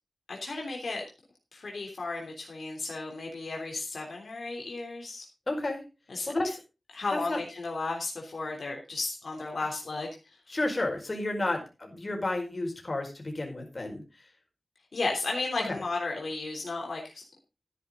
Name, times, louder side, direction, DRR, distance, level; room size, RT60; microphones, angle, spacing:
voice 1, 0.3-1.0 1.5-5.3 6.1-6.3 6.9-10.1 14.9-17.2, left 3 dB, 75° left, 0 dB, 3.3 m, -34 dB
voice 2, 5.5-5.8 6.3-6.5 7.3-7.4 10.5-14.0 15.7-15.8, left 2 dB, 40° left, 2 dB, 4.9 m, -31 dB
13.5 x 10.0 x 3.8 m, 0.29 s
wide cardioid pair, 80°, 0 cm